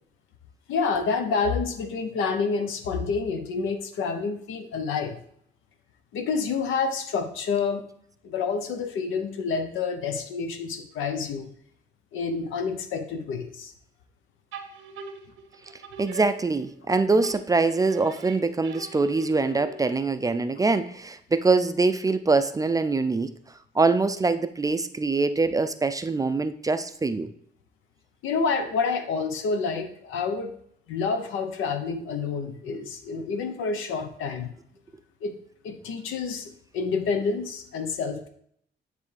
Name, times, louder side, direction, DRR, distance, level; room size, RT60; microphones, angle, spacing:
voice 1, 0.7-5.2 6.1-7.8 8.2-11.5 12.1-13.7 28.2-30.5 30.9-34.5 35.2-38.3, left 5 dB, 85° left, 7 dB, 0.8 m, -28 dB
sound 1, 14.5-16.9 17.2-20.1, right 5 dB, 85° right, 0.8 m, -42 dB
voice 2, 16.0-23.3 23.7-27.3, right 3 dB, 20° right, 10 dB, 0.3 m, -24 dB
9.3 x 3.3 x 3.3 m, 0.68 s
cardioid pair, 90°, 20 cm